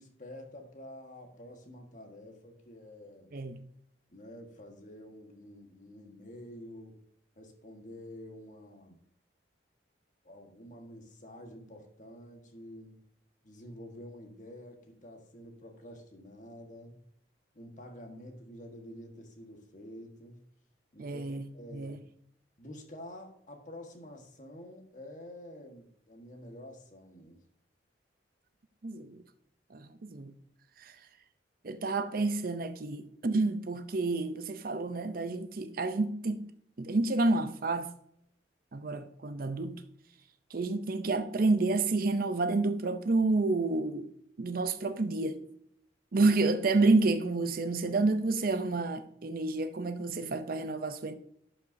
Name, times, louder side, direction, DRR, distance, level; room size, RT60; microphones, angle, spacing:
voice 1, 0.0-3.3 4.1-7.0 7.3-9.0 10.2-13.0 13.4-17.0 17.5-20.5 20.9-21.3 21.5-22.0 22.6-27.4, left 1 dB, 45° left, 1.5 m, -48 dB
voice 2, 21.0-21.4 21.7-22.0 28.8-29.2 29.7-30.3 30.8-30.9 31.6-36.4 36.8-37.9 38.7-39.8 40.5-44.1 44.4-45.4 46.1-51.1, right 3 dB, 50° right, 0.6 m, -29 dB
11.5 x 5.4 x 2.7 m
head